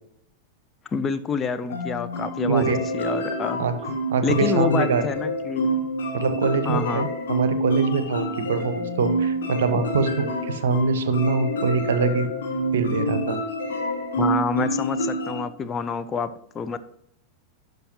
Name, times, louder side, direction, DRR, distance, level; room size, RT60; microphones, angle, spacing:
voice 1, 0.9-3.7 4.2-5.7 6.7-7.1 9.7-9.8 14.2-16.8, left 5 dB, 20° left, 10 dB, 0.5 m, -27 dB
sound 1, 1.7-15.4, right 1 dB, 65° left, 1.5 m, -27 dB
voice 2, 2.5-2.8 3.6-5.0 6.1-12.3 12.7-13.4, right 4 dB, 60° right, 12 dB, 0.7 m, -24 dB
11.0 x 5.3 x 2.8 m, 0.72 s
figure-of-eight pair, 90°, 0 cm